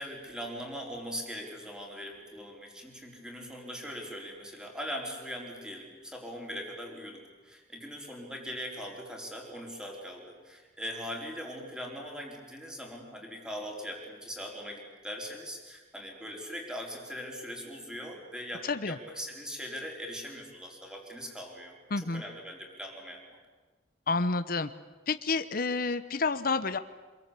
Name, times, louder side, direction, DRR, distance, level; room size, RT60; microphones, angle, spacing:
voice 1, 0.0-23.2, equal, 5° right, 0 dB, 4.6 m, -41 dB
voice 2, 21.9-22.2 24.1-24.7 25.1-26.8, left 3 dB, 55° left, 11 dB, 0.9 m, -29 dB
26.5 x 22.5 x 8.5 m, 1.3 s
head